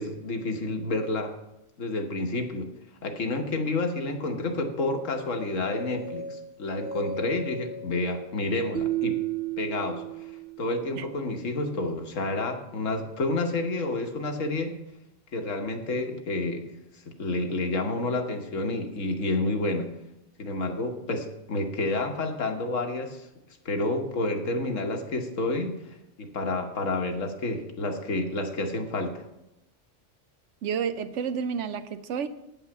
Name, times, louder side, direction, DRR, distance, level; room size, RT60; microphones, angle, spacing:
voice 1, 0.0-1.3 1.8-2.7 3.0-9.2 9.6-10.0 10.6-14.8 15.3-16.7 17.1-19.9 20.4-23.3 23.6-25.7 26.2-29.2, left 2 dB, 90° left, 1.5 m, -29 dB
sound 1, 5.3-9.4, left 1 dB, 40° right, 1.9 m, -40 dB
sound 2, 8.7-10.9, right 16 dB, 55° right, 0.6 m, -31 dB
voice 2, 30.6-32.3, right 7 dB, 75° right, 1.0 m, -30 dB
9.0 x 5.5 x 7.1 m
omnidirectional pair, 1.3 m